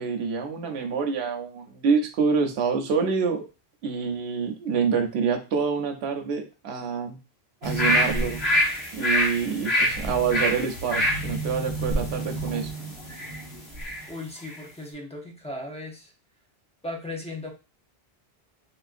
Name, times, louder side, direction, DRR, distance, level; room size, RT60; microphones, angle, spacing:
voice 1, 0.0-3.5 3.8-7.2 7.6-8.4 8.9-12.7, right 5 dB, 85° right, 3 dB, 0.9 m, -26 dB
sound 1, 7.6-14.1 14.4-14.6, equal, 80° left, 1.4 m, -26 dB
voice 2, 14.1-16.1 16.8-17.5, left 2 dB, 10° left, 1 dB, 0.5 m, -36 dB
3.5 x 2.5 x 2.4 m, 0.30 s
omnidirectional pair, 1.1 m